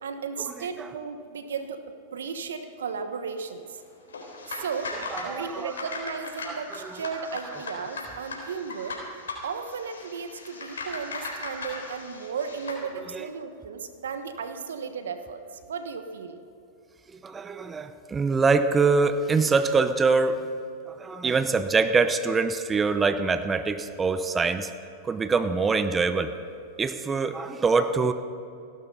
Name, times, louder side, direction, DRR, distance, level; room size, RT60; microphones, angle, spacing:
voice 1, 0.0-1.8 2.1-3.8 4.5-4.9 5.2-9.0 9.4-15.4 15.7-16.4, right 5 dB, 85° right, 8 dB, 1.2 m, -35 dB
sound 1, 4.1-12.8, left 3 dB, 85° left, 3.9 m, -38 dB
voice 2, 5.1-5.7 6.4-6.6 13.1-13.2 17.2-20.4 20.9-24.7 25.0-26.3 26.8-28.1, right 4 dB, 20° right, 10 dB, 0.8 m, -24 dB
16.5 x 12.0 x 5.5 m, 2.7 s
hypercardioid pair, 110°, 0 cm